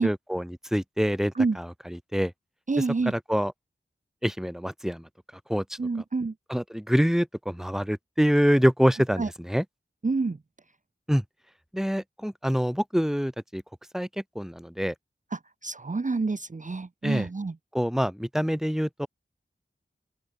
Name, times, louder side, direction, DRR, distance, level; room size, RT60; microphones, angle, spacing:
voice 1, 0.0-2.3 2.8-3.5 4.2-5.0 5.5-5.6 6.5-9.6 11.1-11.2 11.7-13.6 13.9-14.1 14.3-14.9 17.0-17.3 17.7-19.1, equal, ahead, 2.9 m, -26 dB
voice 2, 2.7-3.1 5.8-6.3 9.2-9.3 10.0-10.3 15.6-17.5, right 3 dB, 35° right, 0.8 m, -27 dB
open air
wide cardioid pair, 60°, 21 cm